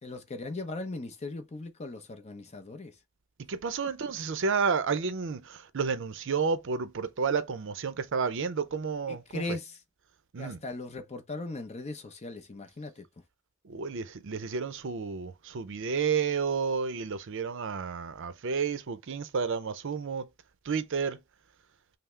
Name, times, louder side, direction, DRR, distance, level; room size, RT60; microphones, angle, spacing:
voice 1, 0.0-2.9 9.1-9.8 10.4-13.1, left 2 dB, 30° left, 0.6 m, -38 dB
voice 2, 3.5-9.4 10.3-10.6 13.7-20.2 20.7-21.2, right 5 dB, 60° right, 0.5 m, -31 dB
5.5 x 2.0 x 3.1 m
head